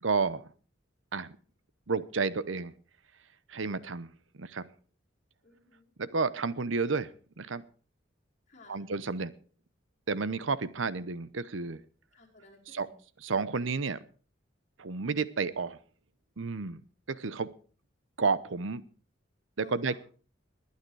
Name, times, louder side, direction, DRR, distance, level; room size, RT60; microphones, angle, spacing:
voice 1, 0.0-0.5 1.1-1.3 1.9-2.7 3.5-4.7 6.0-7.1 7.4-7.6 8.7-9.3 10.1-11.8 12.7-12.9 13.2-14.0 14.8-15.8 16.4-16.8 17.1-17.5 18.2-18.8 19.6-20.0, right 4 dB, 85° right, 17 dB, 0.8 m, -31 dB
voice 2, 5.4-5.9 8.5-8.9 12.1-13.0 19.6-20.0, left 2 dB, 40° left, -2 dB, 4.8 m, -56 dB
21.0 x 9.5 x 4.7 m, 0.40 s
head